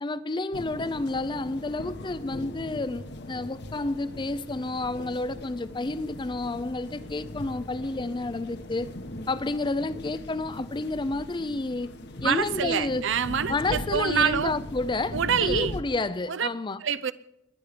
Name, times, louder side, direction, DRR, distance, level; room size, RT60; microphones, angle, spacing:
voice 1, 0.0-8.9 9.3-11.9 12.2-13.1 13.5-15.2 15.4-16.8, left 2 dB, 25° left, 0.5 m, -30 dB
sound 1, 0.5-15.8, left 1 dB, 60° left, 1.2 m, -40 dB
voice 2, 12.2-14.5 15.1-15.7 16.3-16.5 16.8-17.1, right 7 dB, 65° right, 0.6 m, -26 dB
21.5 x 9.7 x 5.1 m
head